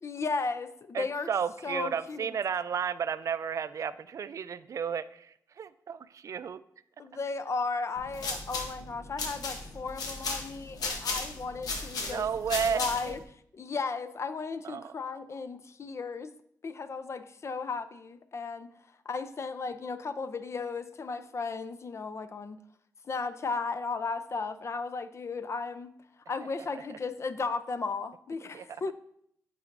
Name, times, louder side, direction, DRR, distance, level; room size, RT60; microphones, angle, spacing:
voice 1, 0.0-1.3 1.6-2.4 7.0-12.3 12.7-13.2 13.5-16.3 16.6-18.7 19.1-22.6 23.0-25.9 26.3-28.9, left 4 dB, 45° left, 0.5 m, -35 dB
voice 2, 0.9-5.3 5.6-6.6 12.0-13.1 14.6-14.9 28.5-28.6, right 7 dB, 55° right, 0.3 m, -32 dB
sound 1, 8.0-13.2, left 3 dB, 80° left, 0.9 m, -36 dB
9.5 x 4.1 x 2.5 m
cardioid pair, 75°, 6 cm